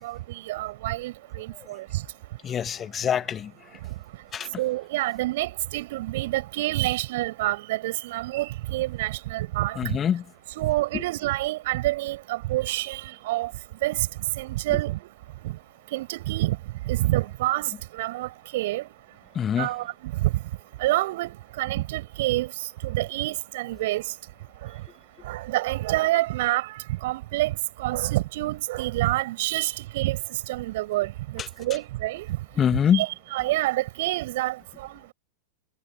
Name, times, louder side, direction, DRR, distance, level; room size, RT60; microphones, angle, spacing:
voice 1, 0.0-1.9 4.6-10.0 10.5-13.5 13.8-14.1 14.4-15.0 15.4-15.6 15.9-16.6 16.9-18.9 19.6-20.3 20.8-22.5 22.8-24.0 25.2-30.2 30.5-32.3 32.9-35.1, right 17 dB, 55° right, 6.7 m, -27 dB
voice 2, 2.4-3.5 4.3-4.5 9.8-10.2 10.9-11.0 19.3-19.7 31.4-31.5 32.6-33.0, left 8 dB, 25° left, 2.3 m, -24 dB
figure-of-eight pair, 90°, 0 cm